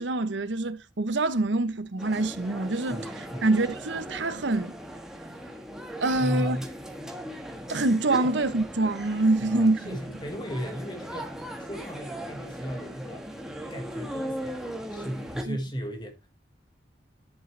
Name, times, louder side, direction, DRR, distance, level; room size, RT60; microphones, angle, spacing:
voice 1, 0.0-4.8 6.0-6.6 7.7-9.8 15.5-15.6, right 2 dB, 80° right, 0.9 m, -25 dB
sound 1, 2.0-15.4, equal, 5° right, 1.5 m, -38 dB
voice 2, 2.9-3.5 6.1-6.7 8.2-8.3 9.4-13.3 13.7-16.3, equal, 25° left, 1.6 m, -35 dB
11.0 x 6.7 x 3.3 m
head